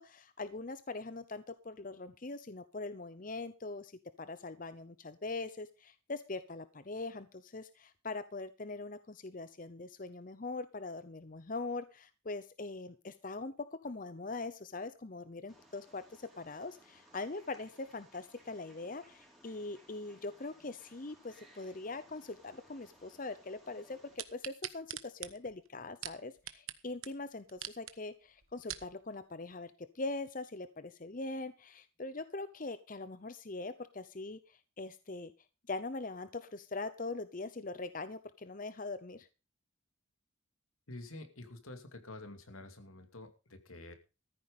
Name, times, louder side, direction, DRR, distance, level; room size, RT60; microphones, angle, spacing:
voice 1, 0.0-3.9 4.2-35.3 35.7-39.3, left 3 dB, 40° left, 12 dB, 0.7 m, -42 dB
Wild animals, 15.5-24.2, right 1 dB, ahead, 4.1 m, -62 dB
sound 1, 24.2-26.8 27.0-27.1 27.5-27.9 28.4-28.9 29.5-29.6, right 12 dB, 80° right, 1.1 m, -43 dB
voice 2, 40.9-43.9, left 2 dB, 85° left, 7 dB, 2.5 m, -48 dB
14.0 x 9.1 x 5.3 m, 0.31 s
head